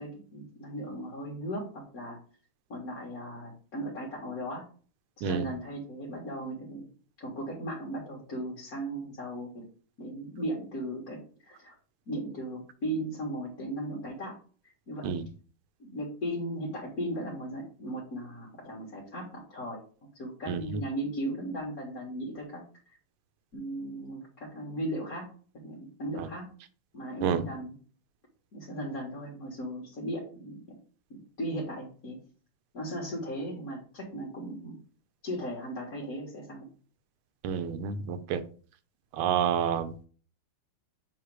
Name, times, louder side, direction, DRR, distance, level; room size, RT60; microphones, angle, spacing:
voice 1, 0.0-2.2 2.7-4.6 5.2-6.9 7.2-9.6 10.0-11.7 12.1-14.4 14.9-15.1 15.8-19.8 20.1-22.6 23.5-25.3 25.6-26.5 26.9-27.7 28.5-30.6 31.1-32.2 32.7-34.8 35.2-36.7, right 1 dB, 45° left, -4 dB, 1.9 m, -37 dB
voice 2, 20.5-20.8 26.2-26.3 27.2-27.4 37.4-38.4 39.1-39.9, right 8 dB, 85° right, 11 dB, 1.6 m, -29 dB
7.3 x 3.3 x 4.7 m, 0.41 s
omnidirectional pair, 2.3 m